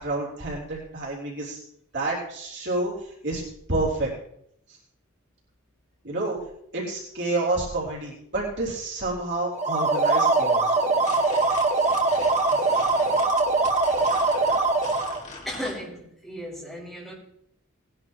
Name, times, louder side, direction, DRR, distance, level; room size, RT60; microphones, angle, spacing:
voice 1, 0.0-1.6 1.9-3.4 3.7-4.1 6.0-6.4 6.7-10.7, right 2 dB, 55° right, -3 dB, 3.5 m, -29 dB
sound 1, 9.5-15.2, right 3 dB, 30° right, 1.5 m, -22 dB
sound 2, 10.6-15.8, left 3 dB, 35° left, 2.0 m, -41 dB
voice 2, 15.4-17.1, equal, ahead, -5 dB, 4.4 m, -35 dB
19.0 x 11.0 x 3.0 m, 0.71 s
head